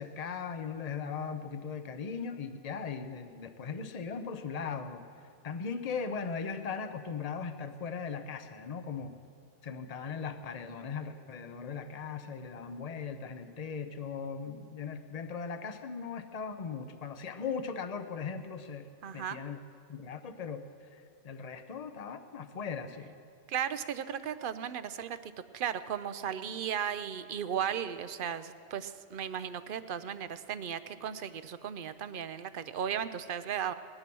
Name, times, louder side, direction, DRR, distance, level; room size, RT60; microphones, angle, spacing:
voice 1, 0.0-5.0 5.4-9.1 9.6-18.9 19.1-19.6 19.9-20.6 21.2-23.1, left 5 dB, 35° left, 9 dB, 0.8 m, -38 dB
voice 2, 19.0-19.4 23.5-33.7, right 8 dB, 55° right, 13 dB, 0.7 m, -36 dB
20.0 x 11.5 x 6.1 m, 2.3 s
omnidirectional pair, 1.2 m